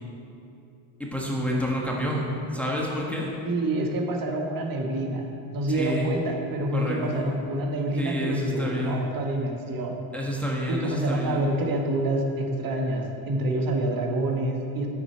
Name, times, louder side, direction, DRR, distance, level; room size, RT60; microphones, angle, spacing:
voice 1, 1.0-2.2 2.5-3.3 5.7-6.1 6.7-7.1 8.0-9.0 10.1-11.5, equal, 5° left, -3 dB, 1.3 m, -29 dB
voice 2, 3.4-5.2 5.5-10.0 10.7-14.9, right 1 dB, 45° right, 2 dB, 1.4 m, -27 dB
9.6 x 8.0 x 4.5 m, 2.7 s
cardioid pair, 115°, 49 cm